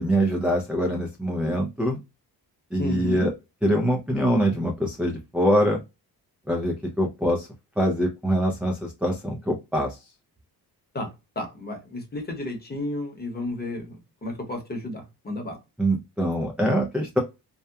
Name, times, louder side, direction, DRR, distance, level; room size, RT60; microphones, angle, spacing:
voice 1, 0.0-2.0 2.7-3.3 3.6-5.8 6.5-7.5 7.8-10.0 15.8-17.2, equal, 5° right, 0.4 m, -24 dB
voice 2, 2.8-3.3 10.9-14.0 14.2-15.6, left 1 dB, 25° left, 0.9 m, -32 dB
2.8 x 2.1 x 2.2 m
cardioid pair, 120°, 40 cm